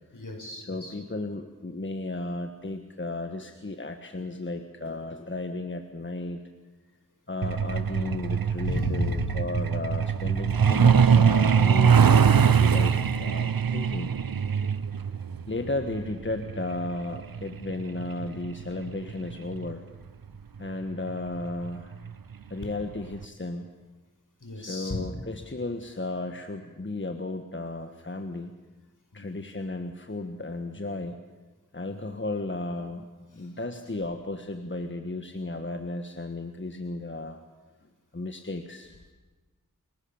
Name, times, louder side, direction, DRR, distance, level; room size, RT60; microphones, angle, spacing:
voice 1, 0.1-1.0 8.6-9.4 24.4-25.0 29.1-29.4 31.9-32.2 33.3-33.5, left 2 dB, 60° left, 3 dB, 5.3 m, -34 dB
voice 2, 0.7-6.4 7.3-14.1 15.5-19.8 20.6-21.9 22.5-23.7 24.5-28.5 29.1-31.2 31.7-33.1 33.3-37.4 38.1-38.9, left 2 dB, 35° left, 6 dB, 1.4 m, -34 dB
Truck, 7.4-19.7 20.9-21.1 21.5-21.7 22.1-22.3 22.7-22.8 23.2-23.3, right 7 dB, 80° right, 0.8 m, -23 dB
29.0 x 17.5 x 7.1 m, 1.3 s
wide cardioid pair, 65°, 34 cm